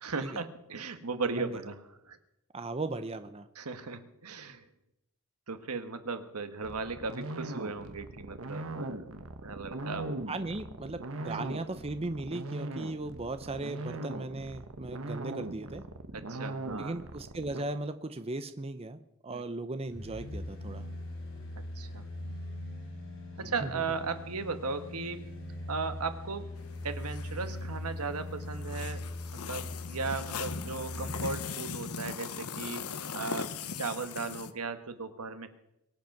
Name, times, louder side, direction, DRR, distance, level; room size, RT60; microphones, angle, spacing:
voice 1, 0.0-1.8 2.1-2.2 3.6-4.6 5.5-9.1 9.4-10.1 16.1-16.9 19.3-19.4 21.7-22.1 23.4-25.2 25.7-26.5 26.8-29.0 29.3-32.9 33.1-35.5, right 4 dB, 90° right, 9 dB, 1.4 m, -36 dB
voice 2, 2.5-3.5 10.3-15.8 16.8-20.9 23.4-23.8, right 2 dB, 25° right, 10 dB, 0.7 m, -37 dB
sound 1, 6.6-17.6, right 2 dB, 65° right, 1.2 m, -39 dB
sound 2, 19.9-31.5 31.9-32.0, left 1 dB, 65° left, 3.6 m, -41 dB
sound 3, 26.6-34.5, left 6 dB, 85° left, 0.9 m, -40 dB
23.0 x 8.0 x 6.0 m, 0.85 s
head